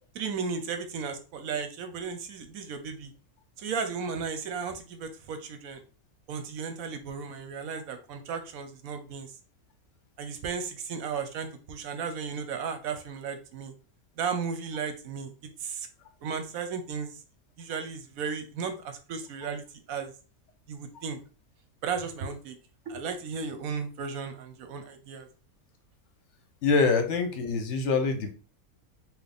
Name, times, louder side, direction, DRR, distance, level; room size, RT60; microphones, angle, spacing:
voice 1, 0.1-3.1 3.6-5.8 6.3-9.3 10.2-13.7 14.2-15.3 15.6-15.9 16.2-17.1 17.6-20.1 20.7-21.2 21.8-22.5 22.9-25.3, right 5 dB, 75° right, 7 dB, 1.1 m, -35 dB
voice 2, 26.6-28.3, left 4 dB, 60° left, 6 dB, 1.0 m, -25 dB
4.1 x 2.5 x 3.4 m, 0.36 s
omnidirectional pair, 1.5 m